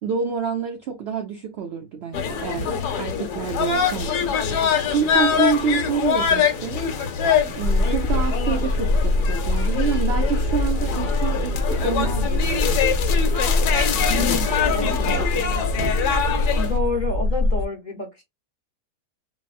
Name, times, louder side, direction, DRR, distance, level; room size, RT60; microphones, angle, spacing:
voice 1, 0.0-2.7 3.0-4.4 4.9-6.8 7.5-12.7 14.2-15.4, right 7 dB, 85° right, 0.5 m, -28 dB
sound 1, 2.1-16.8, left 7 dB, 85° left, 1.2 m, -24 dB
sound 2, 7.6-17.7, left 2 dB, 70° right, 0.9 m, -23 dB
voice 2, 14.1-15.0 16.6-18.2, left 4 dB, 40° left, 0.8 m, -29 dB
4.0 x 2.1 x 2.4 m
omnidirectional pair, 1.7 m